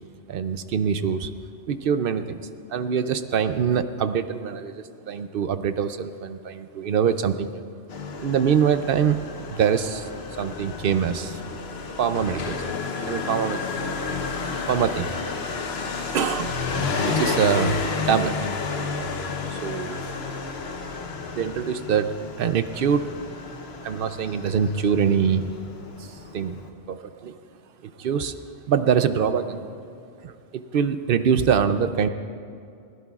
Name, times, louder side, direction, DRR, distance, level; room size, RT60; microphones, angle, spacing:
voice 1, 0.3-1.3 1.7-2.4 2.7-7.6 8.2-9.2 9.5-10.1 10.4-11.4 12.0-12.5 13.1-13.6 14.7-15.5 16.1-16.6 17.1-17.7 18.1-18.4 19.5-20.0 21.3-23.1 23.8-25.5 26.0-26.6 26.9-27.4 27.8-28.3 28.7-29.7 30.2-32.1, right 7 dB, 60° right, 11 dB, 0.6 m, -24 dB
Motorcycle, 7.9-26.7, left 4 dB, 60° left, 1.1 m, -31 dB
20.5 x 16.5 x 2.4 m, 2.5 s
omnidirectional pair, 1.2 m